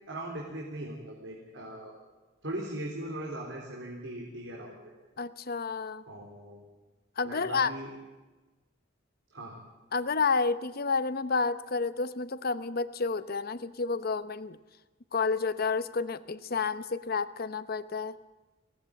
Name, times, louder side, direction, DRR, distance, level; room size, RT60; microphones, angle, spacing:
voice 1, 0.0-1.9 2.4-4.9 6.1-6.6 7.2-7.9 9.3-9.6, right 1 dB, 85° right, -2 dB, 4.0 m, -39 dB
voice 2, 5.2-6.0 7.2-7.7 9.9-14.6 15.1-18.1, left 4 dB, 55° left, 14 dB, 0.9 m, -30 dB
22.0 x 17.5 x 9.1 m, 1.2 s
head